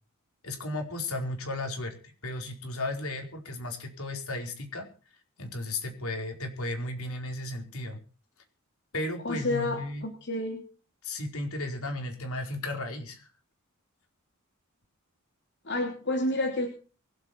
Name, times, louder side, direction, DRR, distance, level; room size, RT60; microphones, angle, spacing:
voice 1, 0.4-4.9 5.4-8.0 8.9-10.0 11.0-13.3, left 2 dB, 70° left, 3 dB, 4.6 m, -34 dB
voice 2, 9.2-10.6 15.6-16.7, left 2 dB, 50° left, 1 dB, 3.2 m, -29 dB
23.0 x 8.3 x 6.0 m, 0.37 s
head